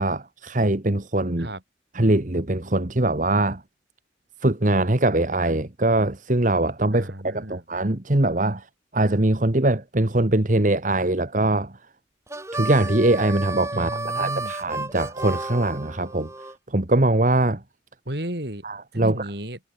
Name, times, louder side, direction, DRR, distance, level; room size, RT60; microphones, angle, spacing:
voice 1, 0.0-1.5 1.9-3.6 4.4-8.7 8.9-11.7 12.5-16.3 16.7-17.6 18.6-19.1, right 2 dB, 45° right, 1.5 m, -22 dB
voice 2, 6.9-7.6 13.7-14.5 18.1-18.6 18.9-19.6, right 1 dB, 65° right, 5.3 m, -33 dB
Harmonica, 12.3-16.5, right 2 dB, 15° right, 3.3 m, -32 dB
head